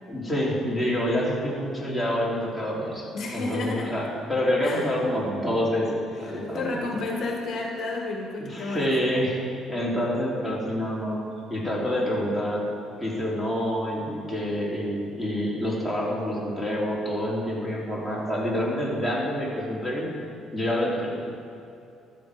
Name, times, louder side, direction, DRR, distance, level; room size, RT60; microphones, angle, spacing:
voice 1, 0.1-6.8 8.4-9.4 9.7-11.2 11.5-12.7 13.0-20.1 20.5-21.2, equal, 5° right, -5 dB, 3.5 m, -27 dB
voice 2, 3.1-3.9 4.6-4.9 6.3-8.9, left 3 dB, 50° left, 0 dB, 1.6 m, -31 dB
13.5 x 13.0 x 5.1 m, 2.5 s
cardioid pair, 125°, 0 cm